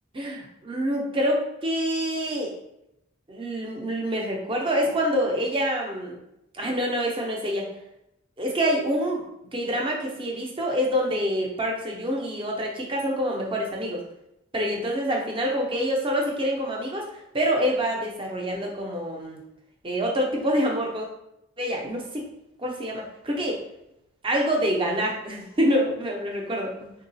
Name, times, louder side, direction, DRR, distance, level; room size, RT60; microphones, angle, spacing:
voice 1, 0.1-2.5 3.3-6.2 6.6-7.7 8.4-9.2 9.5-14.0 14.5-17.1 17.3-19.4 19.8-21.1 21.6-22.0 22.6-23.6 24.2-26.9, equal, 25° right, -1 dB, 0.6 m, -26 dB
3.7 x 2.3 x 2.6 m, 0.84 s
head